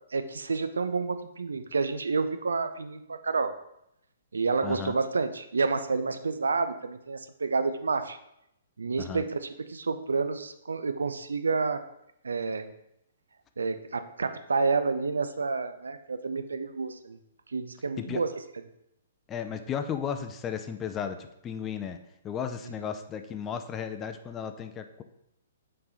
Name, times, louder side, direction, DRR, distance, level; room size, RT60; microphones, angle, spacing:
voice 1, 0.1-3.5 4.3-8.2 8.8-11.8 12.2-12.7 13.6-17.2 17.5-18.3, right 4 dB, 70° right, 10 dB, 0.5 m, -29 dB
voice 2, 4.6-4.9 9.0-9.2 18.0-18.2 19.3-22.0 22.2-25.0, left 8 dB, 20° left, 7 dB, 0.5 m, -34 dB
6.5 x 3.3 x 5.4 m, 0.80 s
figure-of-eight pair, 120°, 0 cm